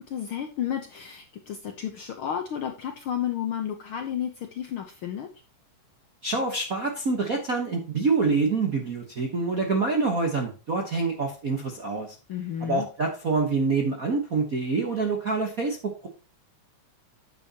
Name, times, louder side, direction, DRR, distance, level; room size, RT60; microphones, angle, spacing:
voice 1, 0.0-5.3 12.3-12.9, left 9 dB, 80° left, 4 dB, 1.2 m, -32 dB
voice 2, 6.2-12.1 12.6-16.1, right 4 dB, 60° right, 2 dB, 0.8 m, -26 dB
9.7 x 7.5 x 2.9 m, 0.35 s
omnidirectional pair, 3.6 m